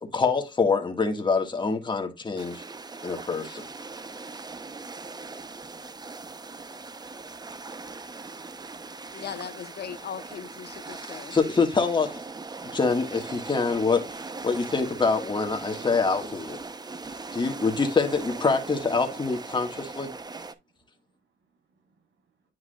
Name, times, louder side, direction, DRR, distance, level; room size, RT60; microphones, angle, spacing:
voice 1, 0.0-2.6 3.0-3.7 10.9-12.2 12.7-16.6 17.3-20.1, left 4 dB, 25° left, 1.6 m, -25 dB
sound 1, 2.4-20.5, right 3 dB, 20° right, 0.7 m, -40 dB
voice 2, 9.1-11.4, left 8 dB, 55° left, 1.0 m, -38 dB
voice 3, 21.1-22.0, right 4 dB, 65° right, 4.0 m, -69 dB
9.6 x 4.8 x 2.3 m
cardioid pair, 90°, 20 cm